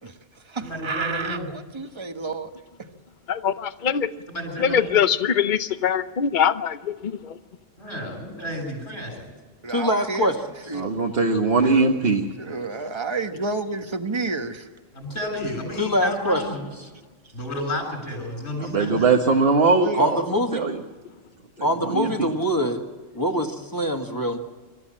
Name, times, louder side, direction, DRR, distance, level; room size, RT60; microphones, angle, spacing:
voice 1, 0.0-2.5 9.6-10.3 10.7-10.9 11.6-12.0 12.4-14.7 19.6-20.1, right 3 dB, 25° right, 7 dB, 1.2 m, -30 dB
voice 2, 0.6-1.5 4.3-5.0 7.8-9.3 14.9-16.6 17.3-19.1, left 1 dB, 60° left, 3 dB, 7.6 m, -31 dB
voice 3, 3.3-4.1 4.6-7.4, left 8 dB, 45° left, 12 dB, 0.9 m, -23 dB
voice 4, 9.7-10.4 15.8-16.4 20.0-20.6 21.6-22.8 23.1-24.4, equal, 15° left, 4 dB, 1.7 m, -24 dB
voice 5, 10.8-12.2 18.6-20.2 20.5-20.8 21.8-22.1, right 4 dB, 50° right, 1 dB, 1.7 m, -20 dB
26.0 x 14.0 x 7.5 m, 1.4 s
omnidirectional pair, 1.3 m